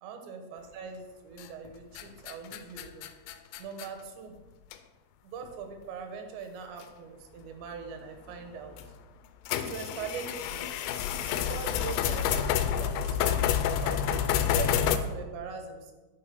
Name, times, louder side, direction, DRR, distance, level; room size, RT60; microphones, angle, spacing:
voice 1, 0.0-3.1 3.6-4.4 5.2-8.8 9.5-10.7 11.2-15.9, right 6 dB, 85° right, 5 dB, 3.2 m, -41 dB
sound 1, 1.4-1.7 2.0-3.9 4.7-4.8 5.4-5.5 6.8-6.9 8.7-8.9 9.5-15.0, left 9 dB, 90° left, 2.9 m, -29 dB
10.0 x 4.9 x 5.4 m, 1.2 s
omnidirectional pair, 5.0 m